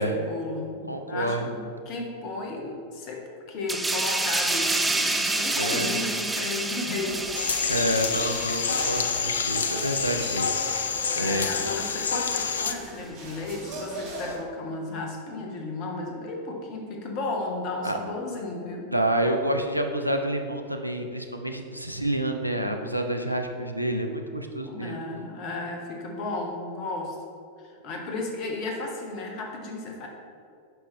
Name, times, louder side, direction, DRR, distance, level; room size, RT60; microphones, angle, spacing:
voice 1, 0.0-7.4 7.8-8.0 11.1-18.9 24.6-27.1 27.6-30.1, left 2 dB, 40° left, 1 dB, 1.3 m, -34 dB
voice 2, 0.9-1.5 5.5-6.0 7.7-10.5 10.8-11.5 17.8-18.0 18.9-25.0, right 1 dB, 90° right, 4 dB, 0.6 m, -28 dB
sound 1, 3.7-10.9 11.2-11.4, right 2 dB, 10° right, 0.5 m, -29 dB
sound 2, 7.0-14.4, right 2 dB, 50° right, 1.5 m, -40 dB
sound 3, 7.3-12.7, left 6 dB, 65° left, 0.4 m, -28 dB
9.3 x 5.7 x 3.3 m, 2.4 s
figure-of-eight pair, 90°, 0 cm